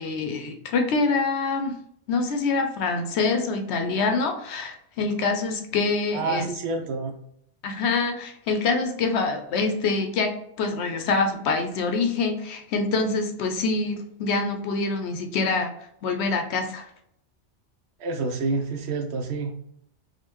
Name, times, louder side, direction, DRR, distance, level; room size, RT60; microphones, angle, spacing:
voice 1, 0.0-1.7 2.1-6.5 7.6-10.3 10.6-15.7 16.0-16.8, left 4 dB, 70° left, 5 dB, 0.8 m, -25 dB
voice 2, 6.1-7.1 18.0-19.5, right 3 dB, 70° right, 3 dB, 0.8 m, -28 dB
3.5 x 2.4 x 3.0 m, 0.71 s
omnidirectional pair, 1.2 m